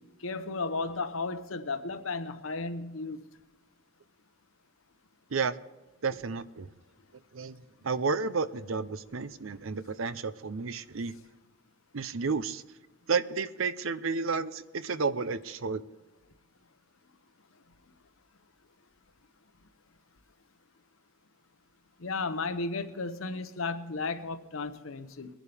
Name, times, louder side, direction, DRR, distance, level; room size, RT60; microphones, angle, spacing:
voice 1, 0.2-3.2 22.0-25.3, left 3 dB, 75° left, 1.0 m, -34 dB
voice 2, 6.0-6.7 7.3-11.1 11.9-12.6 13.1-15.8, right 4 dB, 70° right, 0.6 m, -31 dB
21.5 x 11.0 x 3.5 m
head